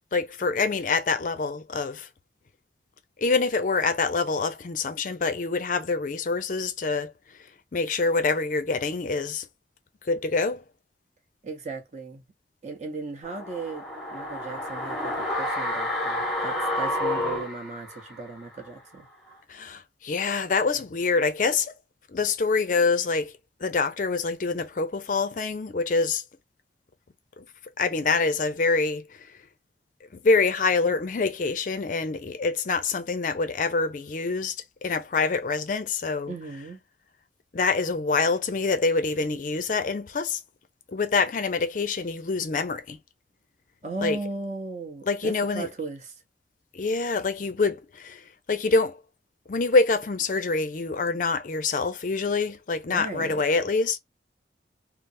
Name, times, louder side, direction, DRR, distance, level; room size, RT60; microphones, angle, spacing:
voice 1, 0.1-2.1 3.2-7.1 7.7-9.4 10.0-10.6 19.5-21.7 22.1-23.3 23.6-26.2 27.4-27.5 27.8-29.3 30.1-34.6 34.8-36.3 37.5-40.4 40.9-43.0 44.0-44.2 45.0-45.7 46.7-49.0 49.5-54.0, left 4 dB, 45° left, 0.4 m, -25 dB
voice 2, 11.4-12.2 12.6-13.8 14.1-19.1 36.3-36.8 43.8-46.1 52.9-53.4, right 3 dB, 40° right, 0.8 m, -36 dB
sound 1, 13.2-18.4 18.7-18.8, left 1 dB, ahead, 0.9 m, -30 dB
3.2 x 2.0 x 2.5 m
head